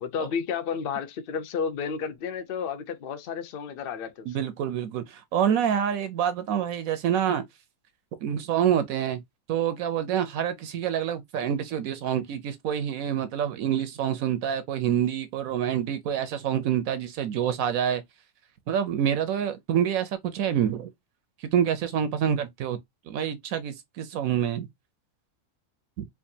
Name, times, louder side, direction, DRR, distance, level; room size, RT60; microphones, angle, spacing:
voice 1, 0.0-4.4, left 6 dB, 55° left, 0.6 m, -32 dB
voice 2, 4.3-7.4 8.2-9.2 9.5-18.0 18.7-20.9 21.4-22.8 23.1-24.7 26.0-26.1, right 9 dB, 70° right, 1.0 m, -27 dB
4.5 x 2.5 x 2.6 m
omnidirectional pair, 1.6 m